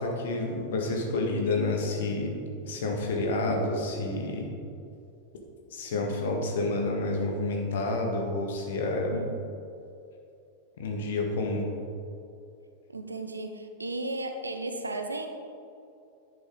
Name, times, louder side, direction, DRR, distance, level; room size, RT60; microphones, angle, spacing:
voice 1, 0.0-2.3 2.6-4.5 5.7-9.1 10.8-11.7, left 2 dB, 60° left, 1 dB, 1.8 m, -29 dB
voice 2, 9.1-9.5 12.9-15.3, right 2 dB, 80° right, 6 dB, 0.9 m, -35 dB
10.5 x 8.8 x 3.9 m, 2.6 s
figure-of-eight pair, 90°, 0 cm